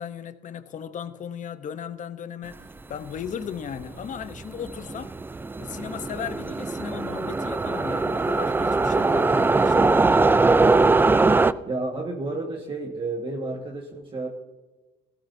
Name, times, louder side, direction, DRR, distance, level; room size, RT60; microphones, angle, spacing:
voice 1, 0.0-5.1 5.6-9.8, left 8 dB, 50° left, 0.9 m, -36 dB
sound 1, 3.8-3.9 4.2-11.5, right 3 dB, 10° right, 0.4 m, -21 dB
voice 2, 11.7-14.3, right 2 dB, 30° right, 1.6 m, -31 dB
17.0 x 16.0 x 2.7 m
cardioid pair, 110°, 17 cm